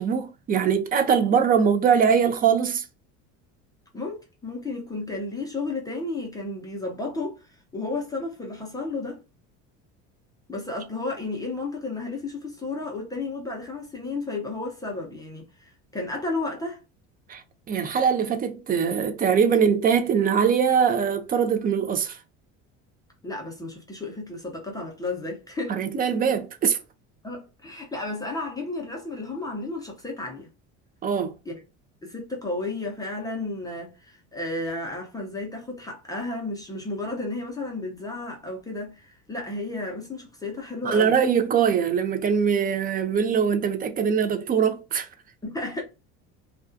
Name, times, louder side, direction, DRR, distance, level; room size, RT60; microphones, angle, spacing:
voice 1, 0.0-2.8 17.3-17.4 17.7-22.2 25.7-26.8 31.0-31.3 40.8-45.1, right 7 dB, 25° right, 0.4 m, -22 dB
voice 2, 3.9-9.2 10.5-16.8 23.2-25.8 27.2-30.5 31.4-31.6 32.0-41.2 45.4-45.8, left 2 dB, 10° left, 0.6 m, -33 dB
2.3 x 2.3 x 2.5 m
supercardioid pair, 115°, 33 cm